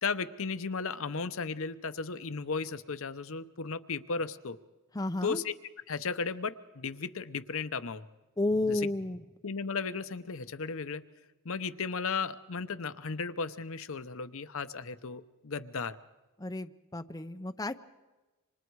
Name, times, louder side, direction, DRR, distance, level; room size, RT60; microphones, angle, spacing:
voice 1, 0.0-4.6 5.2-5.5 5.9-8.0 8.7-8.8 9.4-11.0 11.4-16.0, left 5 dB, 60° left, 11 dB, 0.8 m, -35 dB
voice 2, 4.9-5.4 8.4-9.2 16.4-17.8, left 2 dB, 15° left, 7 dB, 0.7 m, -32 dB
28.5 x 26.0 x 4.7 m, 1.1 s
head